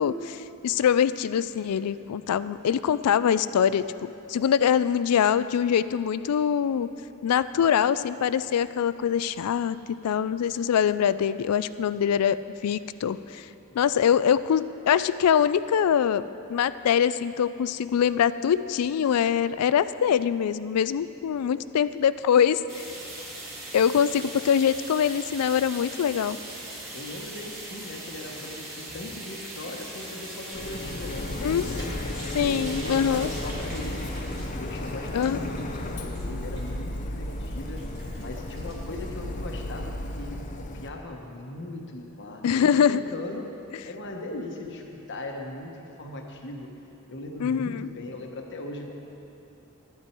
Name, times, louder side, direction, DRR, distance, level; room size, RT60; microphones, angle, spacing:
voice 1, 0.0-6.9 7.2-9.8 10.0-12.4 12.6-13.5 13.7-16.2 16.5-22.9 23.7-26.4 31.4-31.7 32.3-33.3 35.1-35.5 42.4-43.0 47.4-47.9, left 8 dB, 90° left, 15 dB, 0.3 m, -23 dB
sound 1, 22.7-39.5, right 1 dB, 15° right, 2.2 m, -41 dB
voice 2, 26.9-32.1 32.4-34.0 34.6-37.8 38.2-40.4 40.7-43.5 43.8-46.7 47.1-48.9, left 2 dB, 55° left, 2 dB, 1.1 m, -39 dB
Wind instrument woodwind instrument, 29.9-33.6, left 1 dB, 40° right, 2.5 m, -49 dB
Printer, 30.5-40.9, left 1 dB, 35° left, 0.6 m, -34 dB
12.0 x 10.0 x 4.5 m, 2.8 s
head